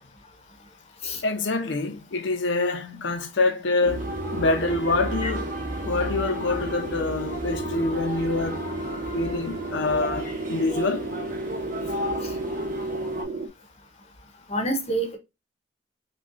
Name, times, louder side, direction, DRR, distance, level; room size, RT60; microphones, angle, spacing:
voice 1, 1.2-5.5 5.8-8.6 9.1-11.1, left 3 dB, 80° left, 0.7 m, -26 dB
sound 1, 3.8-13.2, equal, 45° right, 1.2 m, -35 dB
sound 2, 3.8-13.5, right 2 dB, 65° right, 0.4 m, -33 dB
voice 2, 14.5-15.2, right 1 dB, 35° left, 0.8 m, -27 dB
5.2 x 2.3 x 2.5 m
head